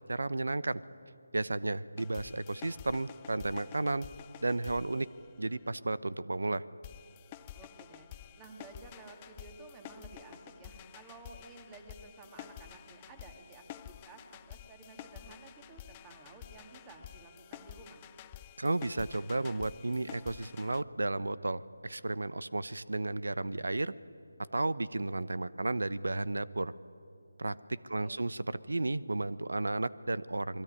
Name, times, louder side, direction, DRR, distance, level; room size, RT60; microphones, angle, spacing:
voice 1, 0.1-0.8 1.3-4.1 4.4-5.1 5.4-6.6 18.6-23.9 24.5-26.7 27.4-30.6, right 2 dB, 80° right, 17 dB, 0.9 m, -33 dB
sound 1, 2.0-5.7 6.8-20.8, left 12 dB, 20° left, 0.6 m, -50 dB
voice 2, 7.5-18.0 27.7-28.3, right 3 dB, 15° right, 4 dB, 2.3 m, -53 dB
27.0 x 21.5 x 9.8 m, 2.7 s
figure-of-eight pair, 160°, 0 cm